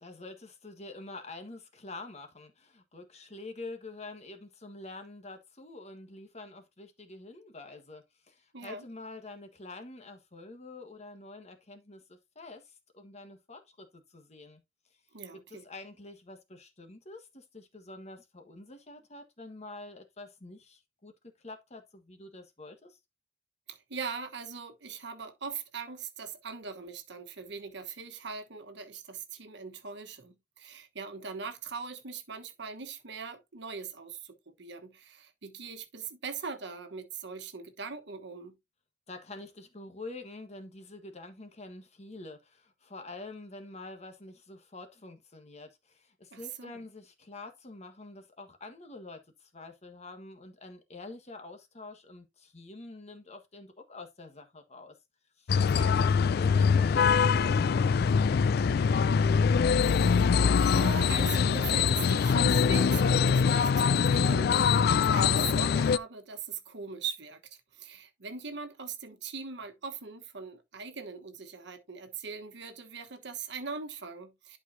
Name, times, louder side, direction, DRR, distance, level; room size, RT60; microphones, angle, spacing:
voice 1, 0.0-14.6 15.3-21.1 21.4-23.0 39.1-55.0 55.4-55.6 55.8-59.3, left 2 dB, 35° left, 1.4 m, -47 dB
voice 2, 15.1-15.6 23.7-38.6 46.3-46.7 55.5-55.9 59.8-74.6, right 5 dB, 65° right, 1.2 m, -41 dB
sound 1, 55.5-66.0, left 6 dB, 55° left, 0.3 m, -23 dB
11.5 x 4.7 x 2.7 m
head